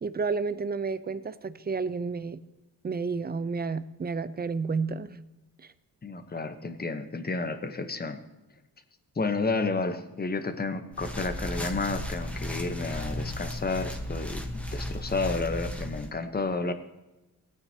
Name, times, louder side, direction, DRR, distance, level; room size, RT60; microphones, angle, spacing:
voice 1, 0.0-2.4 2.8-5.2 5.6-5.7 16.6-16.7, right 4 dB, 25° right, 14 dB, 0.5 m, -31 dB
voice 2, 6.0-8.2 9.2-14.4 14.7-16.7, left 3 dB, 25° left, 9 dB, 1.0 m, -31 dB
sound 1, 10.9-16.1, left 1 dB, 5° left, 1.2 m, -35 dB
18.0 x 9.1 x 2.9 m, 1.0 s
cardioid pair, 115°, 36 cm